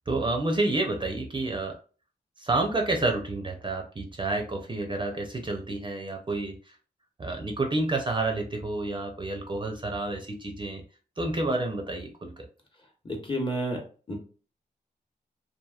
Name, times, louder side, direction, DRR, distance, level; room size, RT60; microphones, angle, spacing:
voice 1, 0.1-1.8 2.4-6.7 7.2-10.8 11.2-12.3, right 2 dB, 30° right, 3 dB, 0.5 m, -29 dB
voice 2, 13.0-13.8 14.1-14.2, right 1 dB, 30° left, 1 dB, 0.9 m, -30 dB
2.8 x 2.5 x 2.3 m, 0.38 s
cardioid pair, 70°, 17 cm